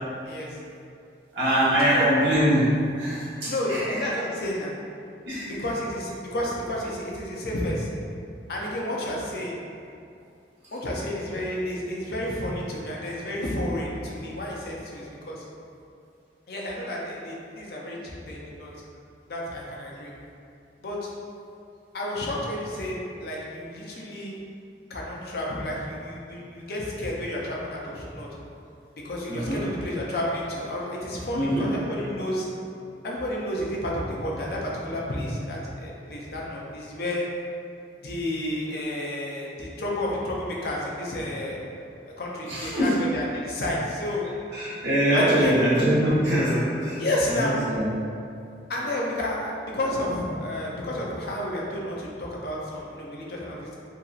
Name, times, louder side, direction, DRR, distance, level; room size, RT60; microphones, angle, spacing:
voice 1, 0.2-0.6 1.8-2.1 3.5-4.7 5.5-7.9 8.5-9.6 10.7-15.4 16.5-18.7 19.3-20.1 20.8-21.1 21.9-24.4 24.9-28.3 29.0-32.5 33.0-37.3 38.0-41.7 42.0-44.2 45.1-45.6 47.0-47.6 48.7-53.8, left 1 dB, 60° left, -4 dB, 0.5 m, -31 dB
voice 2, 1.3-4.0 5.3-5.5 29.3-29.7 31.3-31.7 42.5-42.9 44.5-47.9, equal, 85° right, -9 dB, 1.0 m, -23 dB
2.8 x 2.8 x 2.4 m, 2.5 s
head